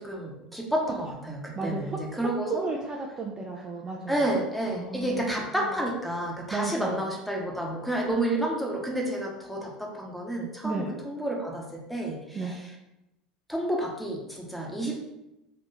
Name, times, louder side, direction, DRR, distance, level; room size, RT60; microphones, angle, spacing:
voice 1, 0.0-2.7 4.1-12.7 13.5-15.0, right 1 dB, ahead, -1 dB, 1.0 m, -30 dB
voice 2, 1.6-2.0 2.5-4.2 4.7-5.5 6.5-7.1 10.6-10.9 12.3-12.6, right 3 dB, 20° right, -1 dB, 0.4 m, -33 dB
2.8 x 2.7 x 3.8 m, 0.92 s
figure-of-eight pair, 75°, 4 cm